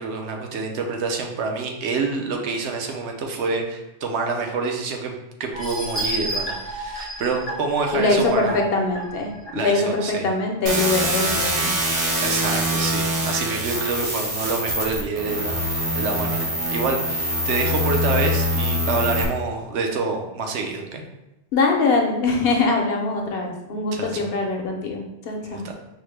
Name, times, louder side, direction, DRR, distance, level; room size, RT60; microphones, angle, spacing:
voice 1, 0.0-8.6 9.5-10.3 12.2-21.0 23.9-24.3 25.5-25.7, right 4 dB, 80° right, 3 dB, 0.9 m, -27 dB
sound 1, 5.5-10.0 10.5-10.6 11.0-11.1, right 1 dB, 15° left, 0.5 m, -31 dB
voice 2, 7.9-9.3 9.5-11.7 21.5-25.6, left 3 dB, 65° left, 1 dB, 0.8 m, -22 dB
sound 2, 10.7-19.3, equal, 45° right, 0.5 m, -24 dB
4.7 x 2.1 x 3.2 m, 0.95 s
omnidirectional pair, 1.2 m